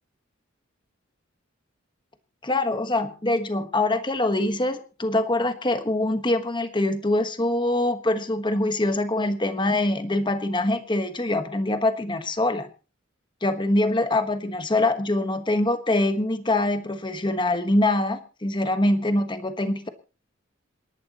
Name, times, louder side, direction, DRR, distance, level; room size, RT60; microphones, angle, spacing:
voice 1, 2.4-12.7 13.4-19.9, left 2 dB, 25° left, 9 dB, 1.3 m, -24 dB
27.5 x 11.5 x 3.0 m, 0.35 s
head